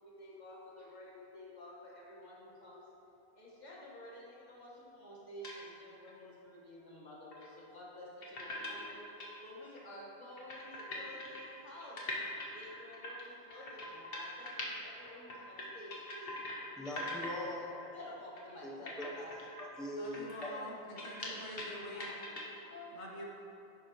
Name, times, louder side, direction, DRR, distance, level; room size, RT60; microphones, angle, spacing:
voice 1, 0.0-2.9 3.3-12.0 12.5-16.4 17.9-19.4 20.3-20.7 21.9-22.2 22.7-22.9, left 1 dB, 40° left, -5 dB, 1.7 m, -51 dB
sound 1, 5.4-5.6 6.0-6.1 7.3-7.5 8.2-9.3 9.8-9.9 10.1-10.2 10.4-14.8 15.0-16.6 16.9-17.4 17.7-17.9 18.4-18.5 18.9-21.7 22.0-22.6, left 1 dB, 55° left, 1.4 m, -43 dB
voice 2, 16.8-17.9 18.6-19.1 19.6-20.5, left 1 dB, ahead, -3 dB, 0.7 m, -42 dB
voice 3, 20.0-20.7 21.0-22.1 22.9-23.3, left 1 dB, 75° left, -3 dB, 1.5 m, -45 dB
10.0 x 7.4 x 3.1 m, 3.0 s
omnidirectional pair, 1.2 m